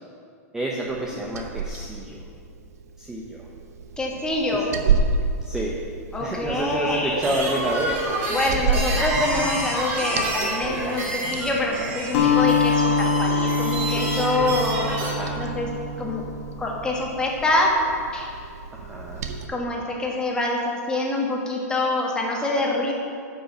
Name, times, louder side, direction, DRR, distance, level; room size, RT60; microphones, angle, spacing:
voice 1, 0.5-2.2 3.0-3.4 4.5-4.6 5.4-5.8 6.2-8.1 15.0-15.4 18.7-19.3, right 1 dB, 5° right, -2 dB, 0.8 m, -29 dB
Liquid, 0.9-19.5, right 4 dB, 80° right, 0.9 m, -32 dB
voice 2, 4.0-4.7 6.1-7.2 8.3-14.9 15.4-15.7 16.0-16.2 16.6-17.8 18.1-18.3 19.5-22.9, left 2 dB, 10° left, -2 dB, 1.5 m, -25 dB
sound 1, 7.1-15.1, right 1 dB, 25° right, 2.7 m, -28 dB
Acoustic guitar, 12.1-16.6, left 4 dB, 55° left, 1.6 m, -24 dB
9.9 x 5.4 x 6.5 m, 2.3 s
supercardioid pair, 145°, 8 cm